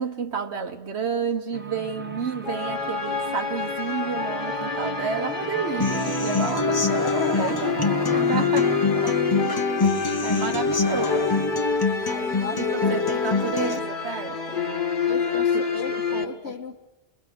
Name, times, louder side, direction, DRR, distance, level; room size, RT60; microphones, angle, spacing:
voice 1, 0.0-7.0 7.3-7.6 8.1-9.4 10.2-11.3 12.6-14.6 15.3-15.4 15.9-16.5, right 6 dB, 85° right, 5 dB, 1.4 m, -31 dB
sound 1, 1.5-11.2, right 3 dB, 10° right, 0.8 m, -39 dB
sound 2, 2.4-16.2, left 5 dB, 50° left, 1.6 m, -28 dB
Human voice / Acoustic guitar, 5.8-13.8, left 3 dB, 25° left, 0.8 m, -25 dB
voice 2, 6.5-8.4 12.0-13.3 15.0-16.8, left 5 dB, 75° left, 7 dB, 1.7 m, -36 dB
27.5 x 20.5 x 6.0 m, 1.0 s
omnidirectional pair, 1.1 m